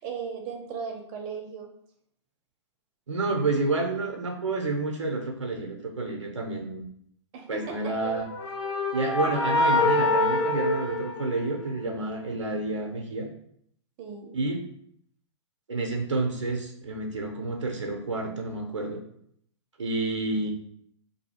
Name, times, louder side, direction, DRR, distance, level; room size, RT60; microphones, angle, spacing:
voice 1, 0.0-1.7 7.3-7.9 14.0-14.3, right 5 dB, 40° right, 3 dB, 0.8 m, -37 dB
voice 2, 3.1-6.8 7.5-8.3 8.9-13.3 14.3-14.6 15.7-19.0 19.8-20.5, right 3 dB, 85° right, 2 dB, 0.7 m, -29 dB
sound 1, 7.9-11.8, left 2 dB, 55° left, 0.8 m, -25 dB
2.7 x 2.7 x 4.2 m, 0.70 s
hypercardioid pair, 115°, 15 cm